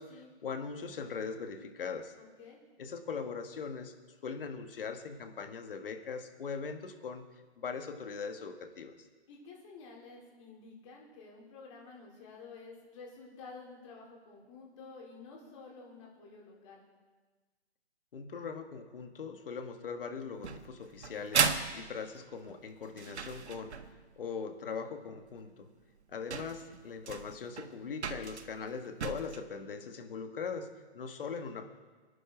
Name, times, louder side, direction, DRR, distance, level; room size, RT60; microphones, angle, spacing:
voice 1, 0.0-2.1 2.8-3.9 4.2-7.2 7.6-9.1 18.1-25.7 26.1-31.7, left 5 dB, 50° left, 6 dB, 1.9 m, -41 dB
voice 2, 2.1-2.6 9.3-16.8, left 4 dB, 25° left, -2 dB, 3.7 m, -51 dB
sound 1, 20.4-24.1 25.4-25.5 26.0-26.1 26.3-29.4, right 6 dB, 70° right, 1.5 m, -35 dB
23.0 x 11.5 x 4.6 m, 1.3 s
hypercardioid pair, 165°, 34 cm